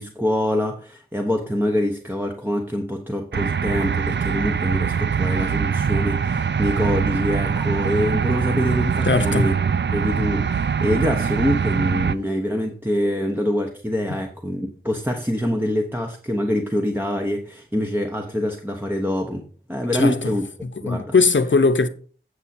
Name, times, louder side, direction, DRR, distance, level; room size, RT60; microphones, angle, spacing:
voice 1, 0.0-9.5 9.9-20.5 20.8-21.1, left 1 dB, 10° right, 1.0 m, -25 dB
sound 1, 3.3-12.1, right 6 dB, 60° right, 0.4 m, -23 dB
voice 2, 9.1-9.5 19.9-20.2 20.6-21.9, left 4 dB, 65° left, 0.8 m, -19 dB
8.0 x 7.1 x 4.3 m
wide cardioid pair, 60°, 21 cm